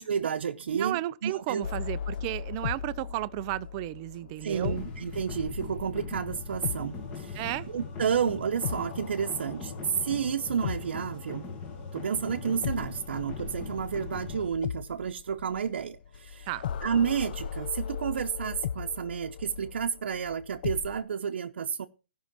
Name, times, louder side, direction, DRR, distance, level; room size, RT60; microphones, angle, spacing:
voice 1, 0.0-1.6 4.4-11.5 11.9-16.5 16.8-21.9, right 7 dB, 75° right, 0.8 m, -31 dB
voice 2, 0.7-4.8 7.3-7.7 16.5-16.6, right 17 dB, 30° right, 0.5 m, -33 dB
sound 1, 1.6-11.4 12.6-21.0, left 8 dB, 55° left, 0.5 m, -38 dB
sound 2, 4.5-14.5, left 4 dB, 20° left, 1.8 m, -41 dB
14.0 x 5.6 x 6.0 m
hypercardioid pair, 160°, 6 cm